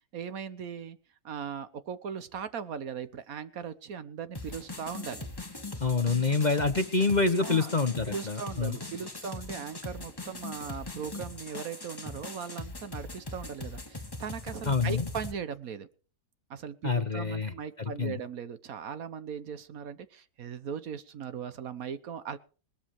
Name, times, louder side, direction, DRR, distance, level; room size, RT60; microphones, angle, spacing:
voice 1, 0.1-1.0 1.2-5.3 7.4-7.7 8.1-15.9 16.5-22.4, right 7 dB, 65° right, 13 dB, 1.3 m, -39 dB
sound 1, 4.3-15.3, left 2 dB, 15° left, 1.4 m, -41 dB
voice 2, 5.8-8.8 14.7-15.0 16.8-17.5 17.8-18.2, left 4 dB, 35° left, 8 dB, 0.9 m, -27 dB
20.0 x 13.0 x 3.1 m, 0.38 s
omnidirectional pair, 1.7 m